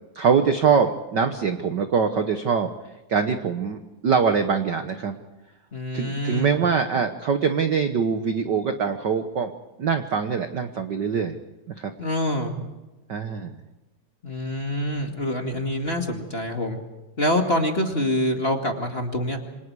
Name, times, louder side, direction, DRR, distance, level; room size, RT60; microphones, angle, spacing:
voice 1, 0.1-2.7 3.1-5.1 5.9-9.5 9.8-11.4 11.7-11.9 13.1-13.6, right 6 dB, 65° right, 7 dB, 1.1 m, -23 dB
voice 2, 5.7-6.6 12.0-12.5 14.2-16.8 17.2-19.4, left 1 dB, 20° left, 3 dB, 1.9 m, -25 dB
28.0 x 25.5 x 4.8 m, 1.0 s
omnidirectional pair, 3.5 m